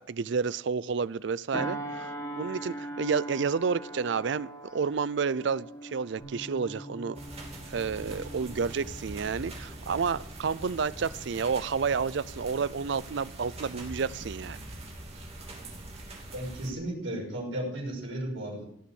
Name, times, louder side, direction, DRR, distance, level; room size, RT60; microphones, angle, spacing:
voice 1, 0.0-2.1 2.3-7.2 7.7-14.6, right 5 dB, 60° right, 19 dB, 0.5 m, -30 dB
sound 1, 1.5-10.4 10.9-11.1, right 1 dB, 15° left, 1.7 m, -41 dB
Bass guitar, 6.2-12.4, equal, 50° left, 6.4 m, -50 dB
sound 2, 7.1-16.7, right 1 dB, 30° right, 2.9 m, -43 dB
voice 2, 16.3-18.6, right 1 dB, 85° right, -2 dB, 5.7 m, -34 dB
17.5 x 7.2 x 7.1 m, 0.71 s
head